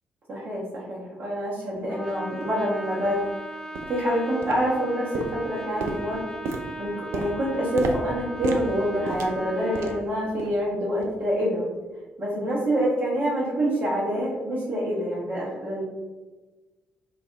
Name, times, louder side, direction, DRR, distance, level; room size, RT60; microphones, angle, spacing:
voice 1, 0.3-3.2 3.9-6.2 6.8-11.6 12.2-15.8, equal, 40° right, -7 dB, 1.0 m, -26 dB
sound 1, 1.8-1.9 2.4-2.5 3.0-3.2 3.7-4.0 4.4-4.9 5.1-10.1 10.4-10.7 11.0-11.2 11.7-11.8, right 3 dB, 60° right, 0.3 m, -34 dB
Trumpet, 1.9-10.1, right 1 dB, 15° left, 0.6 m, -38 dB
2.6 x 2.4 x 3.4 m, 1.2 s
figure-of-eight pair, 40°, 5 cm